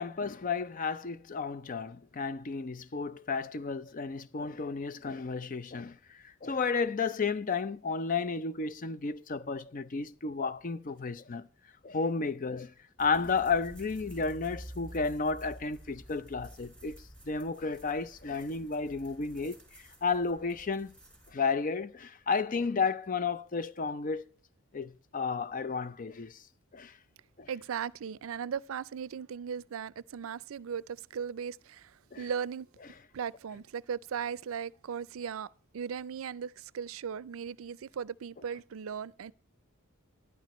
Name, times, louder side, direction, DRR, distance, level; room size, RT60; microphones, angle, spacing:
voice 1, 0.0-11.5 11.8-12.7 13.0-17.0 17.3-19.6 20.0-20.9 21.3-24.2 24.7-26.4 26.7-26.9 27.4-27.5 32.1-32.3, left 4 dB, 40° left, 0.5 m, -32 dB
sound 1, 13.0-21.3, right 1 dB, 5° left, 4.1 m, -50 dB
voice 2, 27.5-32.7 33.1-35.5 35.7-39.3, right 7 dB, 80° right, 0.4 m, -37 dB
13.5 x 11.0 x 3.1 m
head